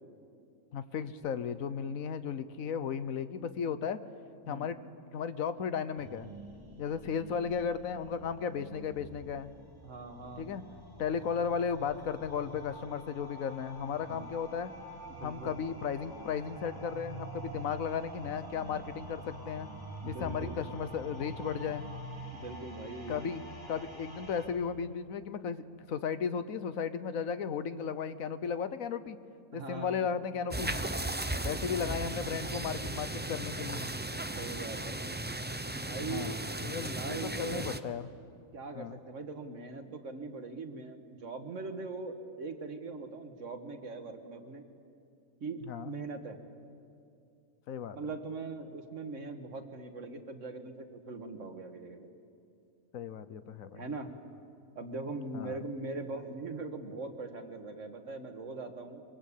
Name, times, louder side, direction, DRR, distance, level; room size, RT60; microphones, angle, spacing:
voice 1, 0.7-4.0 4.5-4.8 5.1-6.3 6.8-9.5 10.4-10.6 11.0-14.7 15.2-19.7 20.0-21.8 23.1-23.4 23.7-29.2 29.5-30.8 31.4-33.9 36.1-36.4 36.6-38.1 38.7-39.0 45.6-45.9 47.7-48.0 52.9-53.8 55.3-55.6, left 7 dB, 70° left, 13 dB, 1.3 m, -35 dB
sound 1, 6.0-24.5, right 1 dB, 40° right, 4.5 m, -46 dB
voice 2, 9.8-10.5 14.1-14.2 15.1-15.6 20.0-20.6 22.3-23.2 29.5-30.0 31.2-31.6 34.4-35.0 35.7-36.3 36.9-37.8 38.5-44.6 45.4-46.4 48.0-52.1 53.7-54.1 54.8-59.0, right 3 dB, 60° right, 5 dB, 1.9 m, -41 dB
sound 2, 30.5-37.8, right 1 dB, 15° right, 0.3 m, -36 dB
23.5 x 22.5 x 8.5 m, 2.5 s
omnidirectional pair, 1.5 m